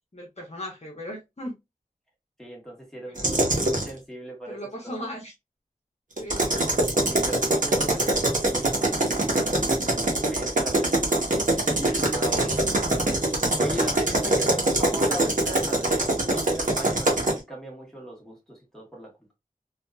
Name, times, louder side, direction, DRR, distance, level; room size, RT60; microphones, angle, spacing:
voice 1, 0.1-1.5 3.0-3.9 4.5-5.3 6.2-6.6 7.0-7.1 12.3-12.5 14.4-14.9, equal, 45° left, 0.9 m, -38 dB
voice 2, 2.4-4.6 7.1-10.9 11.7-12.5 13.6-19.3, right 1 dB, 5° left, 1.3 m, -38 dB
sound 1, 3.2-3.9 6.2-17.4, right 1 dB, 60° right, 0.9 m, -23 dB
2.7 x 2.5 x 2.2 m
wide cardioid pair, 55°, 15 cm